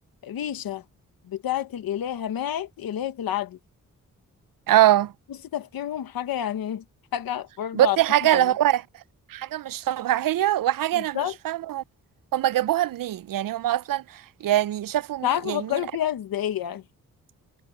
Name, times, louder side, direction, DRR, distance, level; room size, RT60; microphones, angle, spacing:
voice 1, 0.2-0.8 1.2-3.6 5.3-6.8 7.1-8.0 8.3-8.5 10.9-11.4 15.2-16.8, left 11 dB, 85° left, 1.3 m, -29 dB
voice 2, 4.7-5.1 7.8-8.8 9.3-11.2 11.4-11.8 12.3-15.7, right 13 dB, 70° right, 0.6 m, -23 dB
cardioid pair, 55°, 35 cm